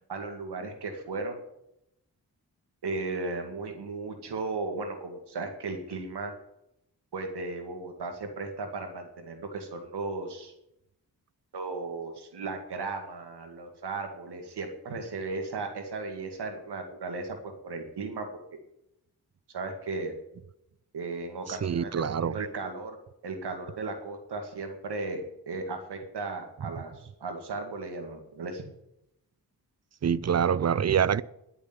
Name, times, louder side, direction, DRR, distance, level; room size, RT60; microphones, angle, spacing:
voice 1, 0.1-1.4 2.8-6.3 7.1-10.5 11.5-18.6 19.5-20.1 20.9-23.0 23.2-28.6, right 3 dB, 90° right, 2.0 m, -36 dB
voice 2, 21.5-22.3 30.0-31.2, right 8 dB, 40° right, 0.6 m, -25 dB
10.5 x 7.0 x 9.5 m
cardioid pair, 45°, 39 cm